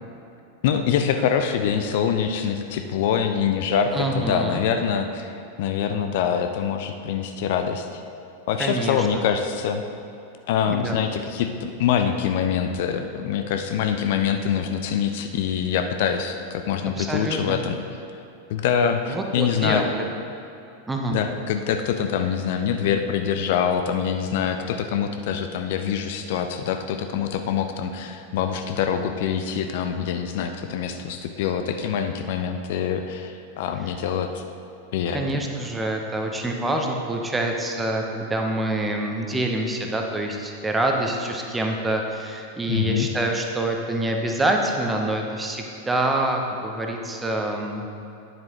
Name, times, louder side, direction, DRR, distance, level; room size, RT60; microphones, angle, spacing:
voice 1, 0.6-8.0 8.5-9.8 10.5-17.8 18.5-19.8 21.1-34.4 34.9-35.5 42.7-43.1, left 8 dB, 50° left, 6 dB, 0.4 m, -25 dB
voice 2, 3.9-4.6 8.6-9.3 10.7-11.0 17.0-17.6 19.1-20.0 20.9-21.2 35.1-47.9, right 1 dB, 10° right, 2 dB, 0.8 m, -26 dB
9.7 x 7.5 x 3.0 m, 2.8 s
figure-of-eight pair, 90°, 0 cm